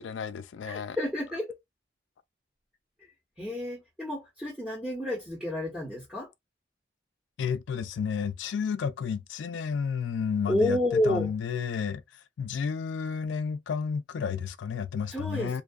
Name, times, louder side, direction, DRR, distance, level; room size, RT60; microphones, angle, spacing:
voice 1, 0.0-1.0 7.4-12.0 12.4-15.6, left 6 dB, 75° left, 0.3 m, -31 dB
voice 2, 0.6-1.6 3.4-6.3 10.5-11.3 15.1-15.6, left 1 dB, 5° right, 1.0 m, -30 dB
2.6 x 2.3 x 2.2 m
head